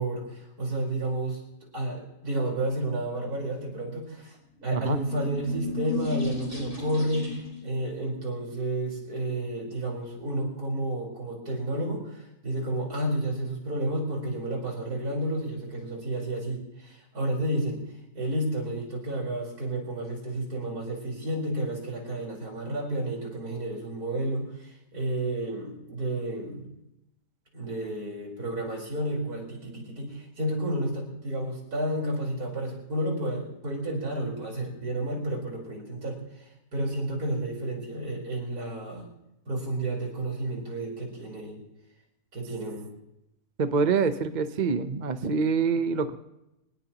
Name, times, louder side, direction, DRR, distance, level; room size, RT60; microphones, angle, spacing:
voice 1, 0.0-1.4 1.7-4.4 4.6-17.8 18.1-26.6 27.5-39.1 39.5-41.6 42.3-42.9, right 1 dB, 70° right, -1 dB, 5.1 m, -31 dB
sound 1, 4.6-7.7, left 3 dB, 10° right, 4.6 m, -35 dB
voice 2, 43.6-46.2, right 5 dB, 40° right, 9 dB, 0.8 m, -25 dB
24.5 x 19.5 x 3.0 m, 0.88 s
omnidirectional pair, 1.7 m